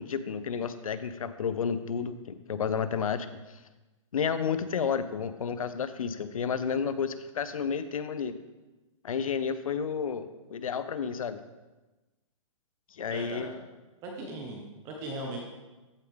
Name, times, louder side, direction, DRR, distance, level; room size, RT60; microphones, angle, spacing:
voice 1, 0.0-3.3 4.1-8.3 9.0-11.4 12.9-13.6, left 6 dB, 90° left, 12 dB, 0.7 m, -31 dB
voice 2, 13.1-13.5 14.0-15.4, right 2 dB, 20° right, 0 dB, 0.8 m, -38 dB
14.0 x 5.0 x 3.5 m, 1.1 s
hypercardioid pair, 165°, 17 cm